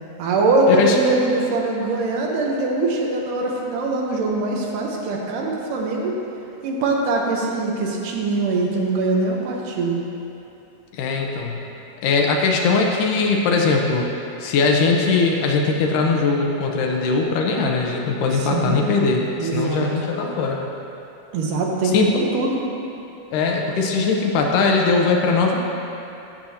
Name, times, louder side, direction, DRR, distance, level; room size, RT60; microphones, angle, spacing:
voice 1, 0.2-6.2 6.6-10.0 18.3-18.8 19.4-19.9 21.3-22.7, right 2 dB, 75° right, -1 dB, 2.4 m, -22 dB
voice 2, 11.0-11.6 12.0-14.1 14.4-20.6 21.9-22.1 23.3-25.6, left 4 dB, 80° left, 0 dB, 2.3 m, -20 dB
13.5 x 7.6 x 2.8 m, 2.9 s
omnidirectional pair, 3.9 m